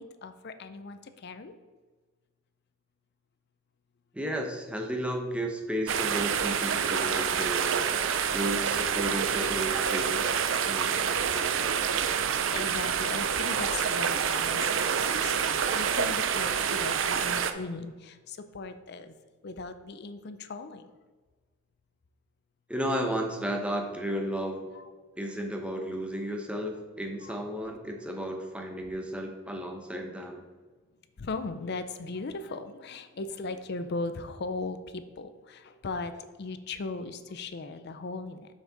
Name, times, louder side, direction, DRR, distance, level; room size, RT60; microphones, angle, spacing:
voice 1, 0.0-1.5 12.5-19.1 19.4-20.9 24.7-24.9 27.2-27.3 31.2-38.5, left 3 dB, 50° left, 10 dB, 0.5 m, -38 dB
voice 2, 4.1-10.4 10.7-11.6 22.7-24.7 25.2-30.4, equal, 5° right, 3 dB, 0.8 m, -33 dB
sound 1, 5.9-17.5, right 7 dB, 60° right, 0.5 m, -27 dB
7.2 x 6.3 x 3.9 m, 1.4 s
head